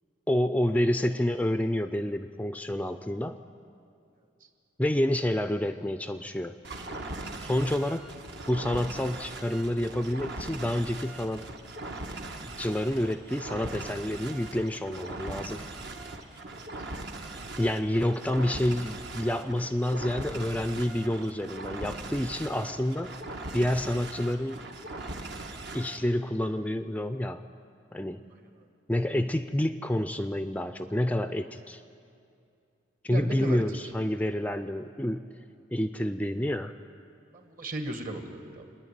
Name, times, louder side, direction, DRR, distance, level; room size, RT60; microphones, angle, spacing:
voice 1, 0.3-3.4 4.8-6.6 7.4-8.1 8.5-11.5 12.4-15.6 17.6-23.2 23.5-24.6 25.7-27.4 27.9-28.2 28.9-31.8 33.0-35.3 35.7-36.8, left 1 dB, 10° left, 9 dB, 0.4 m, -28 dB
sound 1, 6.6-26.0, right 2 dB, 65° right, 1.5 m, -40 dB
voice 2, 28.3-28.7 33.1-33.9 37.3-38.6, right 1 dB, 50° right, 4 dB, 2.0 m, -37 dB
28.0 x 10.5 x 9.3 m, 2.5 s
head